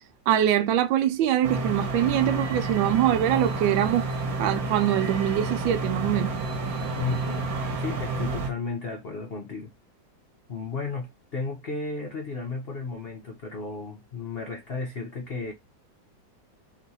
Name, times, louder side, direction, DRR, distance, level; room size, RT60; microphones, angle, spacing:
voice 1, 0.3-4.0 4.4-6.3, right 11 dB, 85° right, 1.4 m, -23 dB
sound 1, 1.4-8.5, right 3 dB, 60° right, 1.2 m, -30 dB
voice 2, 7.0-7.5 7.8-9.7 10.5-15.5, left 4 dB, 70° left, 0.5 m, -33 dB
3.1 x 3.0 x 4.0 m
omnidirectional pair, 2.1 m